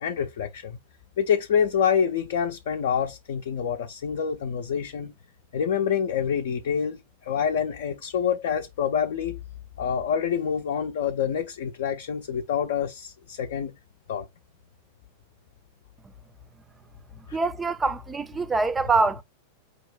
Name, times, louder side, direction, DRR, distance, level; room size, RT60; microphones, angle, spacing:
voice 1, 0.0-0.8 1.2-5.1 5.5-9.4 9.8-13.7 14.1-14.3 17.3-17.4, left 7 dB, 55° left, 0.5 m, -26 dB
voice 2, 17.3-19.2, right 3 dB, 15° right, 0.4 m, -24 dB
5.1 x 2.2 x 3.7 m
figure-of-eight pair, 90°, 0 cm